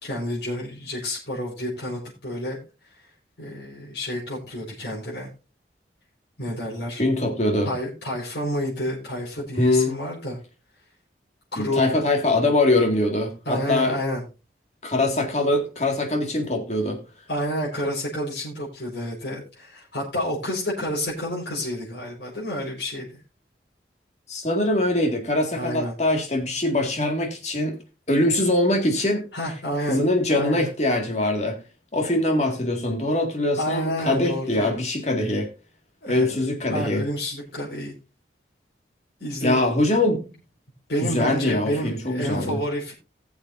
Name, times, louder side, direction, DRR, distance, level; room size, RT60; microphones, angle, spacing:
voice 1, 0.0-3.0 3.4-5.3 6.4-7.0 7.6-10.4 11.5-11.9 13.4-14.2 17.3-23.2 25.5-26.0 29.3-30.7 33.6-34.8 36.0-37.9 39.2-39.6 40.9-42.9, equal, 75° left, -6 dB, 4.7 m, -29 dB
voice 2, 7.0-7.7 9.6-10.0 11.6-14.0 14.8-17.0 24.3-27.8 28.1-29.2 29.9-31.6 31.9-35.5 36.1-37.0 39.4-40.2 41.0-42.6, left 1 dB, 40° left, 3 dB, 2.1 m, -23 dB
19.5 x 7.1 x 2.6 m, 0.30 s
head